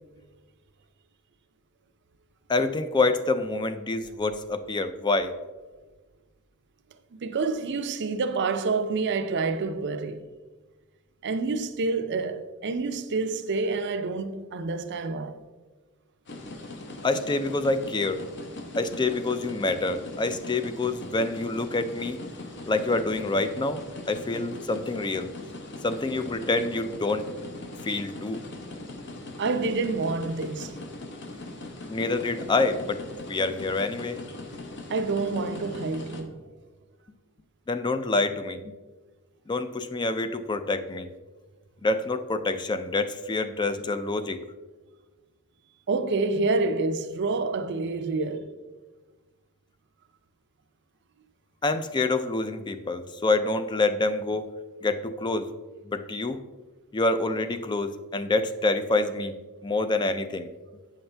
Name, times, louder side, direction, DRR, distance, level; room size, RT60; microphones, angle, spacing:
voice 1, 2.5-5.3 17.0-18.2 18.8-22.2 22.7-23.8 24.1-25.3 25.8-27.3 27.8-28.4 31.9-34.2 37.7-38.7 39.5-41.1 41.8-44.4 51.6-54.5 54.8-55.5 55.8-56.4 56.9-59.3 59.6-60.5, left 3 dB, 20° left, 0.4 m, -27 dB
voice 2, 7.2-10.2 11.2-15.3 29.4-30.8 34.9-36.3 45.9-48.5, right 3 dB, 50° right, 0.5 m, -28 dB
sound 1, 16.3-36.2, left 2 dB, 55° left, 0.9 m, -40 dB
8.6 x 5.7 x 3.3 m
head